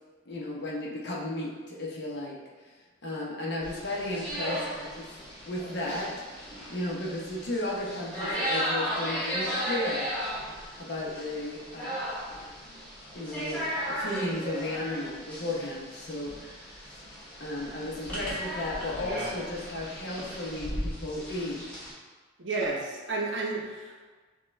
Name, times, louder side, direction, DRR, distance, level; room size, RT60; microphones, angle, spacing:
voice 1, 0.3-2.4 3.0-5.1 5.5-6.1 6.7-10.1 10.8-12.0 13.1-17.0 17.4-21.8, left 1 dB, 55° left, -4 dB, 0.9 m, -34 dB
sound 1, 3.6-21.9, equal, 5° left, 1.2 m, -36 dB
voice 2, 22.4-24.1, right 3 dB, 65° right, -1 dB, 0.7 m, -31 dB
6.4 x 2.3 x 3.2 m, 1.4 s
head